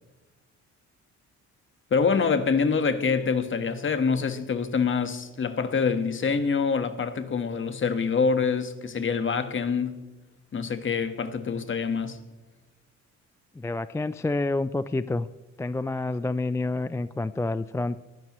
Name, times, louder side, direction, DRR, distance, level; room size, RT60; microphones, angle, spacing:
voice 1, 1.9-10.0 10.5-12.2, left 5 dB, 40° left, 1.4 m, -25 dB
voice 2, 13.5-15.3 15.6-18.0, left 2 dB, 10° left, 0.4 m, -28 dB
20.5 x 15.0 x 3.1 m
cardioid pair, 90°, 30 cm